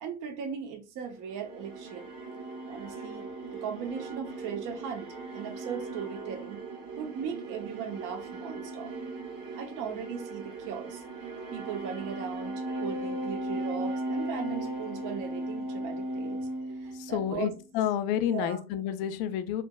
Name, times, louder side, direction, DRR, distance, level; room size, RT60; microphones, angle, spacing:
voice 1, 0.0-2.1 2.7-5.1 5.3-6.6 7.0-8.9 9.5-11.0 11.5-16.5 16.8-17.5 18.2-18.6, right 7 dB, 45° right, 0.6 m, -38 dB
sound 1, 1.2-17.5, right 2 dB, 85° right, 1.2 m, -37 dB
voice 2, 16.9-19.6, left 10 dB, 55° left, 0.5 m, -30 dB
3.4 x 2.0 x 2.3 m
supercardioid pair, 100°, 45 cm